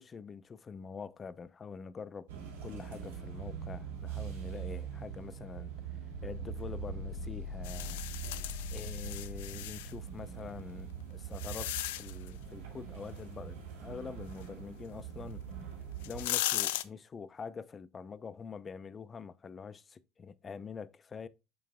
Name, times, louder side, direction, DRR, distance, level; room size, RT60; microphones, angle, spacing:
voice 1, 0.0-2.3 2.6-8.0 8.7-15.4 16.1-21.3, left 5 dB, 30° left, 0.6 m, -45 dB
sound 1, 2.3-16.2, right 5 dB, 80° right, 2.6 m, -42 dB
sound 2, 7.6-9.9 10.7-12.3 15.3-15.4 15.9-16.8, left 16 dB, 75° left, 0.5 m, -36 dB
6.6 x 6.5 x 2.3 m
hypercardioid pair, 75°, 0 cm